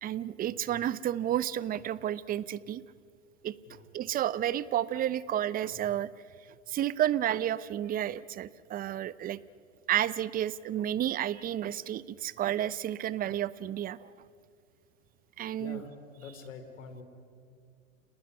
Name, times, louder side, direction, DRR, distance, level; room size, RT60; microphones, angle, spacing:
voice 1, 0.0-2.8 3.4-3.5 3.9-6.1 6.7-9.4 9.9-14.1 15.4-15.8, right 11 dB, 20° right, 18 dB, 0.7 m, -31 dB
voice 2, 15.6-17.0, left 5 dB, 75° left, 8 dB, 4.6 m, -45 dB
29.0 x 19.5 x 9.7 m, 2.2 s
hypercardioid pair, 110°, 39 cm